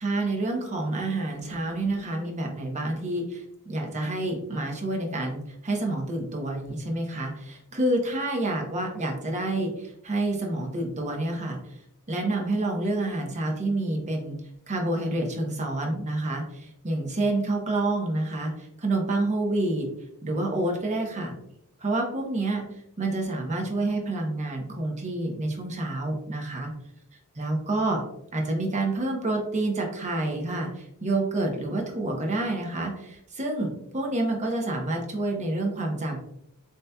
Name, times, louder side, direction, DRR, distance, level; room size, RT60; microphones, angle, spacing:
voice 1, 0.0-11.6 12.1-14.4 14.7-18.5 18.8-19.9 20.2-21.3 21.8-22.7 23.0-26.7 27.4-28.0 28.3-36.2, right 2 dB, 30° right, 1 dB, 0.9 m, -28 dB
7.1 x 2.8 x 2.2 m, 0.78 s
head